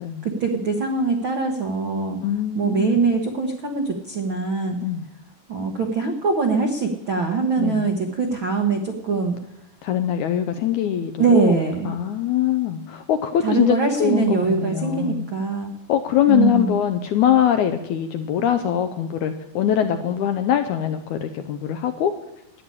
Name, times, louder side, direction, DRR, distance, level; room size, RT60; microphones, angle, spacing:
voice 1, 0.2-2.2 2.5-4.8 5.5-9.4 11.2-11.9 13.4-15.7 16.3-16.8, right 4 dB, 90° right, 3 dB, 1.1 m, -22 dB
voice 2, 2.2-3.0 4.8-5.1 7.6-7.8 9.8-15.3 15.9-22.1, left 10 dB, 80° left, 7 dB, 1.8 m, -22 dB
11.5 x 8.5 x 9.8 m, 0.87 s
omnidirectional pair, 4.1 m